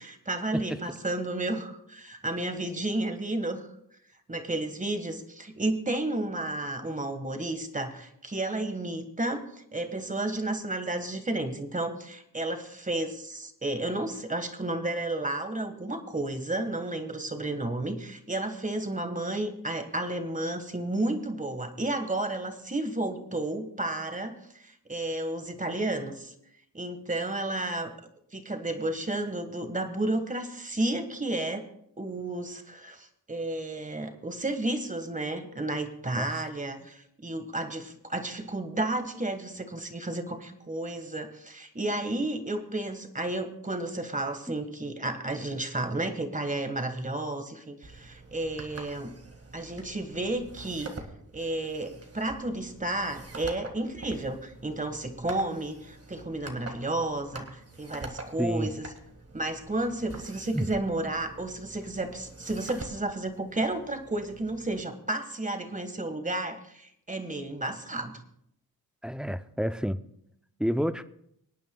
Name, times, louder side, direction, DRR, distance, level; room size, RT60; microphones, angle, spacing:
voice 1, 0.0-3.7 4.3-26.3 26.7-27.9 28.3-31.6 32.0-49.1 49.5-50.9 51.3-58.8 59.3-68.2, right 2 dB, 20° right, 8 dB, 1.6 m, -32 dB
voice 2, 41.9-42.3 44.5-44.6 58.4-58.7 60.5-60.7 69.0-70.0 70.6-71.0, equal, ahead, 12 dB, 0.5 m, -29 dB
sound 1, 47.8-64.8, right 2 dB, 40° right, 1.9 m, -46 dB
24.5 x 9.2 x 2.3 m, 0.73 s
cardioid pair, 70°, 37 cm